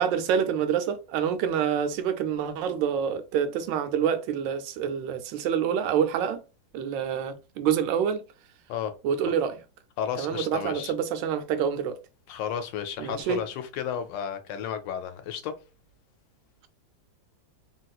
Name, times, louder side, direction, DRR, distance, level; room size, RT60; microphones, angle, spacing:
voice 1, 0.0-6.4 6.7-8.2 9.0-9.6 10.2-12.0 13.0-13.4, right 8 dB, 80° right, 1.2 m, -27 dB
voice 2, 10.0-10.9 12.3-15.6, left 8 dB, 85° left, 1.3 m, -33 dB
3.0 x 2.9 x 2.3 m
omnidirectional pair, 2.0 m